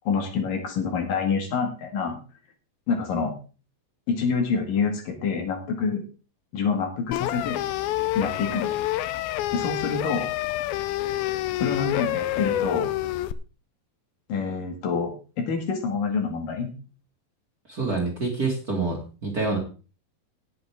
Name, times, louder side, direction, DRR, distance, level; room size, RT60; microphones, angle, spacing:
voice 1, 0.1-2.2 2.9-3.3 4.1-6.0 6.5-7.6 8.2-8.8 9.5-10.3 11.6-12.9 14.3-16.7, left 5 dB, 70° left, 3 dB, 3.6 m, -27 dB
sound 1, 7.1-13.3, left 14 dB, 90° left, 2.5 m, -28 dB
voice 2, 17.7-19.6, right 3 dB, 30° right, -1 dB, 2.2 m, -27 dB
18.0 x 8.0 x 3.6 m, 0.35 s
omnidirectional pair, 4.1 m